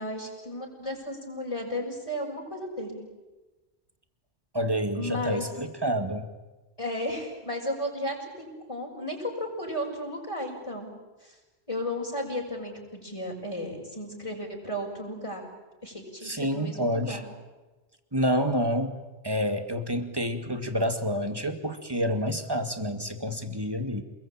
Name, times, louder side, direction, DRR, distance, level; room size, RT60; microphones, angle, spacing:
voice 1, 0.0-3.0 4.9-5.4 6.8-10.9 11.2-11.3 11.7-15.5 15.8-17.2, left 1 dB, 30° left, -1 dB, 6.5 m, -34 dB
voice 2, 4.5-6.3 16.2-17.2 18.1-19.0 19.2-24.0, equal, 20° right, 7 dB, 2.3 m, -28 dB
28.5 x 21.5 x 9.0 m, 1.2 s
omnidirectional pair, 1.2 m